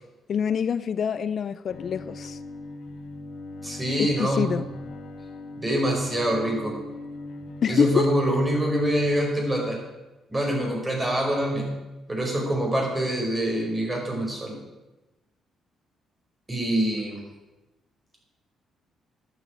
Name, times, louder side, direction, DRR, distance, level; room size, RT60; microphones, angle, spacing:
voice 1, 0.3-2.4 4.0-4.7 7.6-8.4, left 7 dB, 55° left, 15 dB, 0.4 m, -26 dB
Bowed string instrument, 1.7-9.2, left 2 dB, 80° left, 1.5 m, -40 dB
voice 2, 3.6-4.5 5.6-6.7 7.7-9.8 10.3-11.7 12.1-14.6 16.5-17.2, right 1 dB, 20° right, 0 dB, 5.1 m, -25 dB
11.5 x 8.2 x 8.3 m, 1.0 s
cardioid pair, 90°, 0 cm